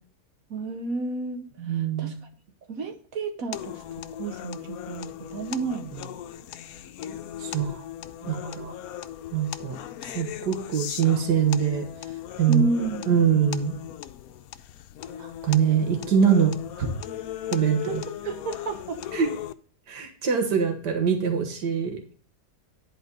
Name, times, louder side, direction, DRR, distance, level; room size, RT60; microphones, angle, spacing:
voice 1, 0.5-1.5 2.0-2.1 2.7-3.8 4.2-6.1 8.2-8.7 12.5-13.0 17.8-19.0, right 2 dB, 60° right, 7 dB, 1.4 m, -31 dB
voice 2, 1.6-2.2 7.4-7.8 8.3-8.7 9.3-9.8 10.1-11.9 12.4-12.6 13.1-13.8 15.2-16.5 16.8-16.9 17.5-18.0 19.1-19.3 19.9-22.2, right 7 dB, 85° right, 4 dB, 2.0 m, -23 dB
sound 1, 3.5-19.5, left 12 dB, 70° left, 1.0 m, -38 dB
10.5 x 4.4 x 5.2 m, 0.43 s
omnidirectional pair, 1.8 m